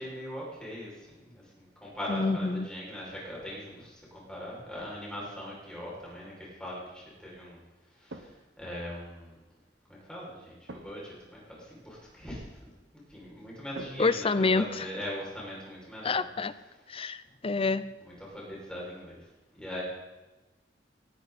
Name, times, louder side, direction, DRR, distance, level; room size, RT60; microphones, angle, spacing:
voice 1, 0.0-7.6 7.9-9.4 9.9-12.7 13.1-16.2 18.0-19.8, equal, 5° left, -5 dB, 6.3 m, -41 dB
voice 2, 2.1-2.7 14.0-14.9 16.0-16.5 16.9-17.8, left 3 dB, 30° left, 14 dB, 0.6 m, -27 dB
sound 1, 8.1-8.7 10.7-11.2 13.7-14.9 18.4-18.7, right 2 dB, 75° right, 1.3 m, -47 dB
19.0 x 13.0 x 4.3 m, 1.1 s
head